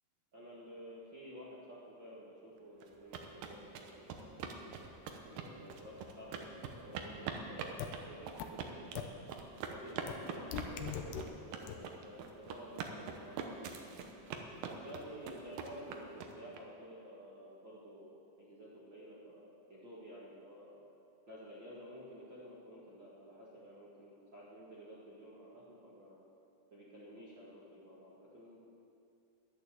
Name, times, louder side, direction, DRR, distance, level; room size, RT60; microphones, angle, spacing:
voice 1, 0.3-4.4 5.2-8.8 9.7-13.7 14.6-20.7 21.3-26.2 26.7-28.6, equal, 45° right, -8 dB, 1.5 m, -52 dB
sound 1, 2.8-16.6, right 6 dB, 75° right, 2.1 m, -44 dB
sound 2, 7.8-7.9 8.4-8.5 9.0-9.1 10.1-10.2 10.5-11.2 11.7-11.8, left 10 dB, 75° left, 2.5 m, -38 dB
11.0 x 11.0 x 7.7 m, 2.6 s
omnidirectional pair, 5.3 m